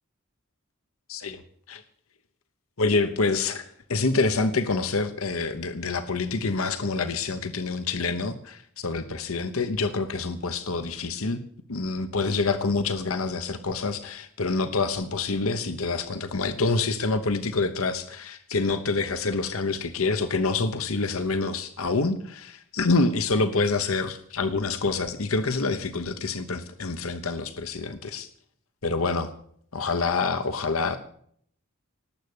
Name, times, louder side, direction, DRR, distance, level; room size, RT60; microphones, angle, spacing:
voice 1, 1.1-1.4 1.7-1.8 2.8-11.4 11.7-28.3 28.8-29.3 29.7-31.0, left 3 dB, 80° left, 10 dB, 1.0 m, -27 dB
19.0 x 8.1 x 8.5 m, 0.64 s
head